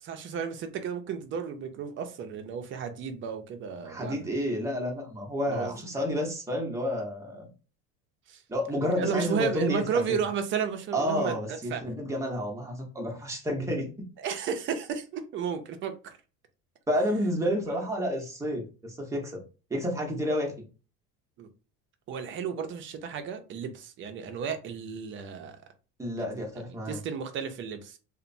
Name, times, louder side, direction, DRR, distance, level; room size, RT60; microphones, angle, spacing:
voice 1, 0.0-4.3 5.5-5.8 8.3-8.4 8.9-11.8 14.2-16.2 17.7-17.8 21.4-21.5 22.1-25.6 26.2-28.0, right 6 dB, 40° right, 0.5 m, -33 dB
voice 2, 3.9-7.5 8.5-9.8 10.9-13.9 16.9-19.4 19.7-20.5 26.0-27.0, equal, 10° right, 0.8 m, -30 dB
2.8 x 2.1 x 2.6 m
cardioid pair, 135°, 33 cm